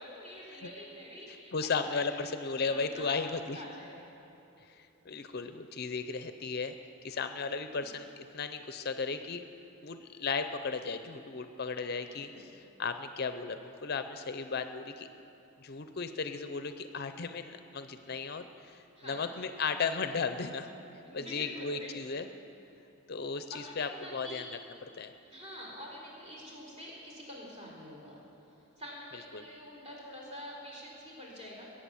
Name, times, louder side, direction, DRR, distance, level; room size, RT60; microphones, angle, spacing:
voice 1, 0.0-1.8 2.6-4.1 12.0-12.5 19.0-19.2 21.0-22.2 23.5-24.5 25.2-28.2 28.5-31.7, equal, 25° right, -4 dB, 4.1 m, -47 dB
voice 2, 1.3-3.6 4.6-6.7 7.0-9.4 9.8-15.1 15.6-20.7 21.1-22.3 23.1-24.4 25.0-25.1 29.3-29.4, left 4 dB, 50° left, 9 dB, 0.5 m, -35 dB
21.5 x 8.8 x 7.1 m, 2.9 s
head